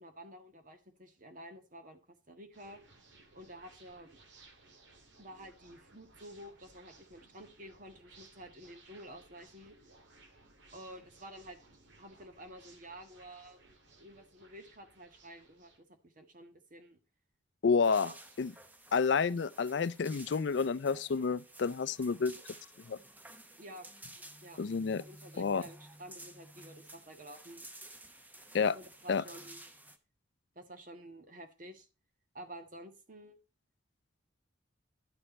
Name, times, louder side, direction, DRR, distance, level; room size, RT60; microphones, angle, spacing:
voice 1, 0.0-2.8 3.3-4.2 5.2-9.7 10.7-11.6 12.0-13.6 14.0-17.0 17.9-18.2 19.3-19.4 23.6-23.9 24.4-24.6 25.0-27.7 28.7-29.6 30.5-31.9 32.3-33.4, right 1 dB, 45° right, 1.6 m, -51 dB
sound 1, 2.5-15.8, right 3 dB, 70° right, 2.2 m, -61 dB
voice 2, 17.6-18.1 18.4-18.5 18.9-22.3 22.9-23.0 24.6-25.0 25.4-25.6 28.5-28.8 29.1-29.2, left 5 dB, 65° left, 0.4 m, -29 dB
sound 2, 17.8-30.0, right 1 dB, 10° right, 0.8 m, -53 dB
11.5 x 6.6 x 4.2 m
head